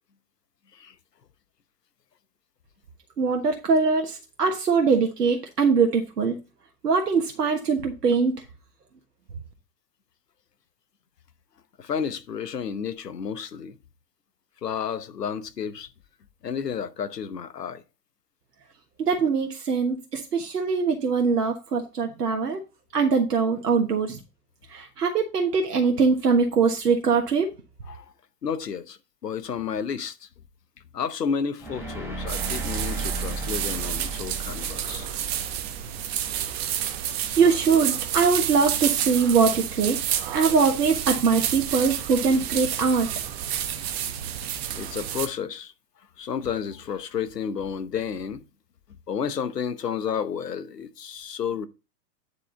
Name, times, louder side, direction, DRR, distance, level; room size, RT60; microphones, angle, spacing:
voice 1, 3.2-6.4 6.8-8.4 19.0-22.6 22.9-24.2 24.7-27.5 37.4-40.0 40.3-43.1, right 5 dB, 70° right, 1.4 m, -22 dB
voice 2, 11.8-13.8 14.6-15.9 16.4-17.8 27.9-28.1 28.4-30.3 30.9-35.1 44.4-45.7 46.2-48.4 49.1-51.7, left 7 dB, 75° left, 1.1 m, -31 dB
sound 1, 31.6-36.7, right 3 dB, 5° right, 3.1 m, -35 dB
sound 2, 32.3-45.3, right 10 dB, 40° right, 1.0 m, -30 dB
9.7 x 5.0 x 3.8 m
figure-of-eight pair, 105°, 49 cm